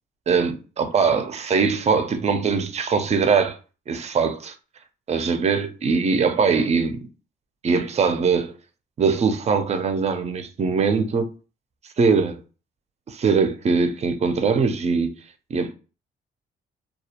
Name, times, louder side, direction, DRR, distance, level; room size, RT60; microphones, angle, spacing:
voice 1, 0.3-3.6 3.9-4.5 5.1-7.1 7.6-8.5 9.0-11.3 12.0-12.4 13.1-15.1 15.5-15.7, right 5 dB, 35° right, 0.4 m, -21 dB
2.3 x 2.0 x 2.8 m
cardioid pair, 90°, 20 cm